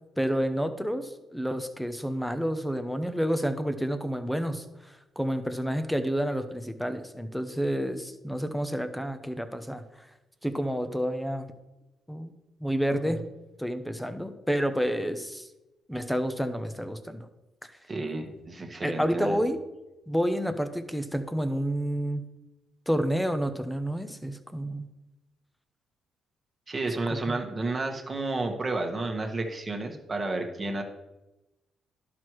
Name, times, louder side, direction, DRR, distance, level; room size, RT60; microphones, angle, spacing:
voice 1, 0.2-10.1 10.4-11.5 12.1-12.3 12.6-13.2 13.6-15.5 15.9-17.3 18.8-19.6 20.1-22.2 22.9-24.9 27.3-27.4, equal, ahead, 9 dB, 0.8 m, -29 dB
voice 2, 17.9-19.4 26.7-30.8, right 2 dB, 25° right, 3 dB, 1.3 m, -31 dB
11.5 x 6.1 x 3.1 m, 1.0 s
cardioid pair, 90°, 0 cm